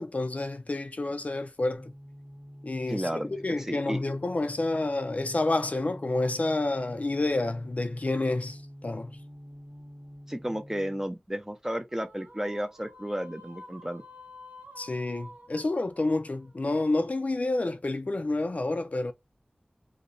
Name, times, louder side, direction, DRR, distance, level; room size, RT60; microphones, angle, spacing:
voice 1, 0.0-1.9 2.6-3.1 3.4-9.2 14.8-19.1, left 2 dB, 55° left, 0.3 m, -29 dB
sound 1, 1.8-11.1, equal, 50° right, 1.3 m, -47 dB
voice 2, 2.9-4.0 10.3-14.0, equal, 15° right, 0.4 m, -33 dB
sound 2, 11.9-17.3, left 1 dB, 90° right, 0.7 m, -50 dB
2.7 x 2.0 x 2.5 m
wide cardioid pair, 50°, 3 cm